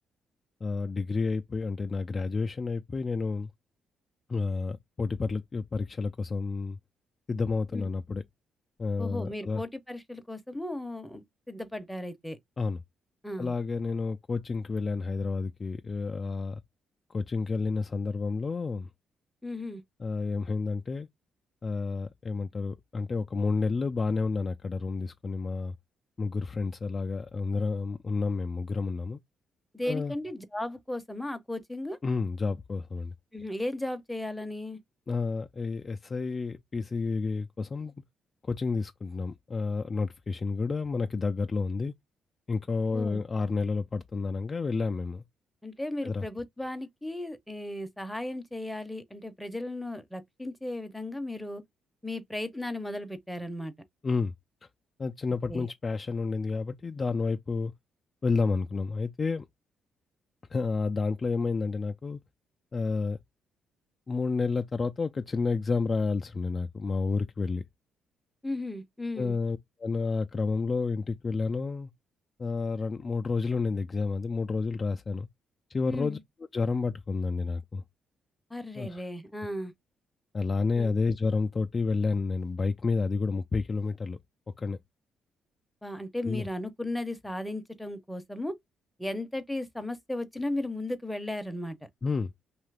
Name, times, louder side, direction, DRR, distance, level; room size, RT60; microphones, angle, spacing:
voice 1, 0.6-3.5 4.3-6.8 7.3-8.2 8.8-9.6 12.6-12.8 13.4-16.6 17.1-18.9 20.0-21.1 21.6-25.7 26.2-29.2 29.8-30.2 32.0-33.1 35.1-37.9 38.4-41.9 42.5-45.2 46.0-46.3 54.0-54.3 55.0-57.7 58.2-59.5 60.5-62.2 62.7-63.2 64.1-67.6 69.2-71.9 72.4-75.3 75.7-76.2 76.5-77.8 78.8-79.0 80.3-84.2 84.6-84.8 86.2-86.4 92.0-92.3, left 4 dB, 35° left, 0.3 m, -30 dB
voice 2, 9.0-12.4 13.2-13.5 19.4-19.8 29.7-32.0 33.3-34.8 42.9-43.2 45.6-51.6 52.0-53.7 55.5-55.7 68.4-69.4 75.9-76.2 78.5-79.7 80.8-81.0 85.8-88.5 89.0-91.8, left 1 dB, 5° left, 0.6 m, -35 dB
2.7 x 2.4 x 3.3 m
cardioid pair, 90°, 0 cm